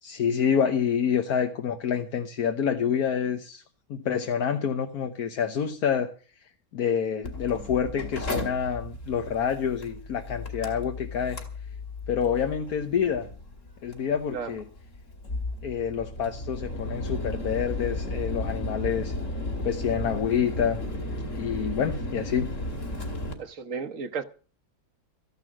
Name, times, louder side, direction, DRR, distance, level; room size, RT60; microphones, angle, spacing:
voice 1, 0.0-3.6 3.9-6.1 6.7-11.4 12.1-13.3 13.8-14.6 15.6-19.1 19.6-20.8 21.3-22.6, left 7 dB, 80° left, 1.5 m, -27 dB
Mechanical fan, 7.2-23.3, left 1 dB, 55° left, 2.8 m, -34 dB
voice 2, 23.4-24.2, right 5 dB, 60° right, 1.4 m, -33 dB
14.0 x 11.0 x 6.2 m
omnidirectional pair, 1.6 m